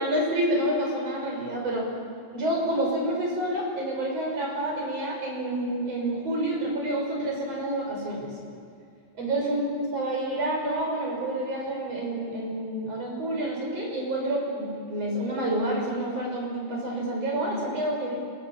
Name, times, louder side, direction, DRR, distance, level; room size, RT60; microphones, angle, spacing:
voice 1, 0.0-1.9 2.3-8.3 9.2-9.6 9.9-18.1, right 1 dB, 45° right, -1 dB, 7.0 m, -28 dB
27.0 x 22.0 x 7.5 m, 2.2 s
omnidirectional pair, 3.9 m